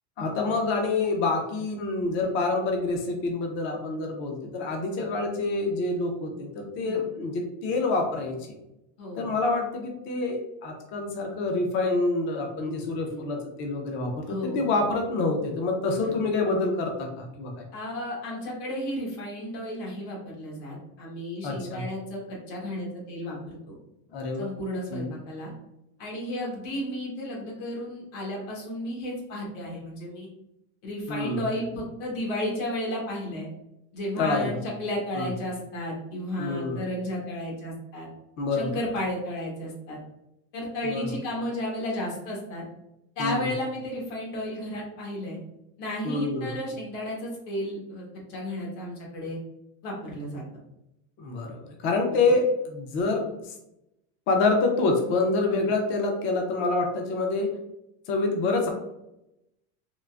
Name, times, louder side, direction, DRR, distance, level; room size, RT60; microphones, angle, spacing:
voice 1, 0.2-8.4 9.2-17.6 21.4-21.8 24.1-24.5 24.9-25.1 31.1-31.4 34.2-34.6 35.2-35.3 36.4-36.8 38.4-38.8 40.8-41.0 43.2-43.5 46.0-46.5 51.2-53.5 54.3-57.6 58.1-58.7, left 3 dB, 30° left, 2 dB, 0.4 m, -27 dB
voice 2, 9.0-9.3 12.5-13.2 14.2-14.8 16.1-16.2 17.7-23.7 24.4-25.5 26.0-30.3 30.8-33.5 33.9-38.1 38.5-40.0 40.5-42.6 43.2-45.4 45.8-48.0 48.3-49.4 49.8-50.4 55.6-55.7, left 1 dB, 70° left, -2 dB, 1.3 m, -33 dB
3.7 x 2.4 x 2.3 m, 0.86 s
cardioid pair, 170°, 39 cm